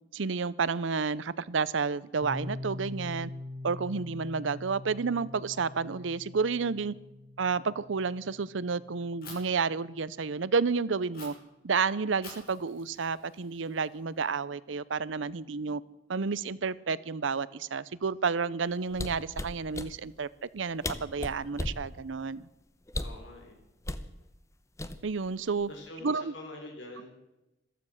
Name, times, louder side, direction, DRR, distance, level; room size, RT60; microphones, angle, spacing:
voice 1, 0.1-3.3 3.6-6.9 7.4-11.3 11.6-15.8 16.1-22.5 25.0-25.7 26.0-26.3, right 5 dB, 85° right, 0.7 m, -30 dB
Piano, 2.2-9.7, left 2 dB, ahead, 2.1 m, -43 dB
Fire, 9.2-9.3 11.1-11.3 12.2-14.2, left 3 dB, 50° left, 5.9 m, -49 dB
sound 1, 18.9-19.9 20.6-20.7 20.8-21.8 22.9-23.2 23.8-24.1 24.8-25.3 25.6-25.9, left 1 dB, 15° left, 0.9 m, -35 dB
voice 2, 23.0-23.6 25.7-27.1, left 2 dB, 75° left, 3.6 m, -45 dB
14.5 x 13.0 x 6.5 m
head